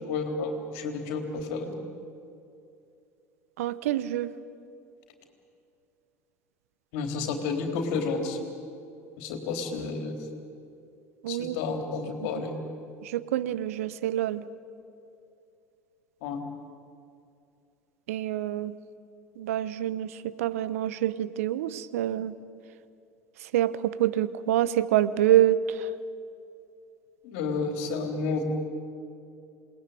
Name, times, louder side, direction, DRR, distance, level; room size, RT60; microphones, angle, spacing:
voice 1, 0.0-1.7 6.9-8.4 9.2-10.2 11.3-12.5 16.2-16.4 27.2-28.4, left 4 dB, 60° left, 5 dB, 3.6 m, -31 dB
voice 2, 3.6-4.3 11.2-11.6 13.0-14.4 18.1-18.7 19.4-22.3 23.5-25.9, right 12 dB, 70° right, 16 dB, 0.9 m, -26 dB
28.0 x 20.0 x 9.2 m, 2.6 s
figure-of-eight pair, 70°, 8 cm